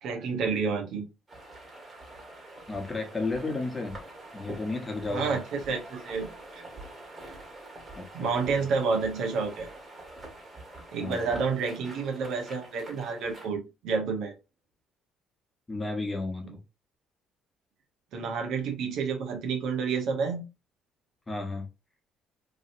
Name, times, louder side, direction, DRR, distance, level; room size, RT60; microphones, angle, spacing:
voice 1, 0.0-1.0 5.1-6.6 8.1-9.7 10.9-14.3 16.4-16.5 18.1-20.5, right 5 dB, 70° right, 0.9 m, -29 dB
sound 1, 1.3-13.5, right 2 dB, 25° right, 1.6 m, -46 dB
voice 2, 2.7-4.0 4.3-5.4 7.9-8.6 11.0-11.3 15.7-16.6 21.3-21.7, left 3 dB, 20° left, 1.2 m, -33 dB
3.0 x 2.7 x 2.6 m
supercardioid pair, 85°, 0 cm